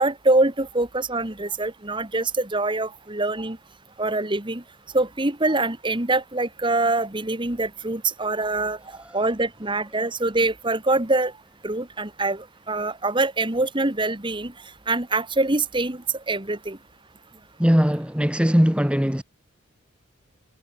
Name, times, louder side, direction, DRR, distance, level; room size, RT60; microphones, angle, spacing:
voice 1, 0.0-3.6 4.0-4.6 4.9-8.8 9.1-11.3 11.6-14.5 14.9-16.8, right 2 dB, 25° right, 1.8 m, -24 dB
voice 2, 17.6-19.2, equal, 5° right, 1.2 m, -20 dB
head